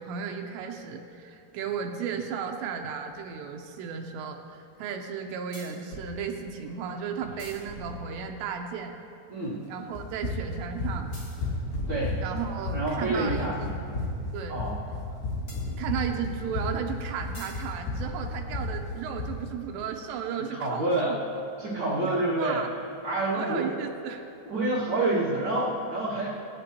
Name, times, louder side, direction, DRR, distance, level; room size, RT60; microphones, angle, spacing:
voice 1, 0.0-8.9 9.7-11.1 12.2-13.7 14.3-14.6 15.8-21.2 22.0-22.7 23.3-24.2, right 7 dB, 80° right, 3 dB, 3.0 m, -34 dB
sound 1, 3.1-3.2 5.5-6.1 7.2-8.5 11.1-12.8 15.5-16.5 17.3-17.7 18.0-19.3, equal, 55° left, 0.8 m, -41 dB
Run, 9.9-19.4, left 2 dB, 80° left, 4.1 m, -32 dB
voice 2, 11.9-12.2 12.7-13.6 14.5-14.8 20.5-21.1 21.6-22.6 23.0-23.7 24.4-26.3, right 2 dB, 60° right, -9 dB, 1.2 m, -28 dB
23.5 x 8.8 x 2.9 m, 2.6 s
omnidirectional pair, 5.0 m